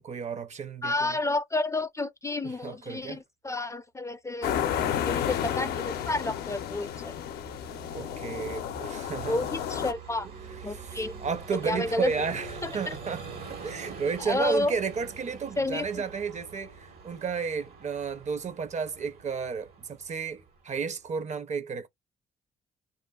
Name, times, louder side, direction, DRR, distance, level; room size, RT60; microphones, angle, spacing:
voice 1, 0.0-1.2 2.4-3.2 7.9-9.4 10.7-21.9, right 5 dB, 45° right, 0.6 m, -33 dB
voice 2, 0.8-4.6 5.0-7.1 9.3-10.3 10.6-11.1 11.7-12.1 12.6-13.0 14.2-14.7 15.6-16.0, left 2 dB, 20° left, 0.3 m, -30 dB
sound 1, 4.4-9.9, left 9 dB, 80° left, 0.4 m, -32 dB
Vehicle, 6.5-21.2, right 4 dB, 75° right, 1.2 m, -45 dB
2.4 x 2.2 x 2.2 m
supercardioid pair, 60°, 16 cm